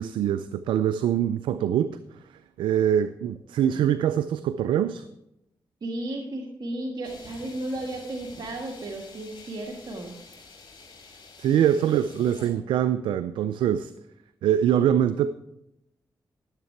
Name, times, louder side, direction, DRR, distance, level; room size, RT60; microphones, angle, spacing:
voice 1, 0.0-2.2 2.6-5.1 11.4-13.9 14.4-15.3, right 10 dB, 90° right, 13 dB, 0.3 m, -24 dB
voice 2, 5.8-10.1 11.8-11.9, right 1 dB, 60° right, 0 dB, 1.6 m, -34 dB
sound 1, 7.0-12.5, left 4 dB, 75° left, 3.3 m, -49 dB
12.5 x 7.5 x 4.5 m, 0.84 s
supercardioid pair, 45°, 8 cm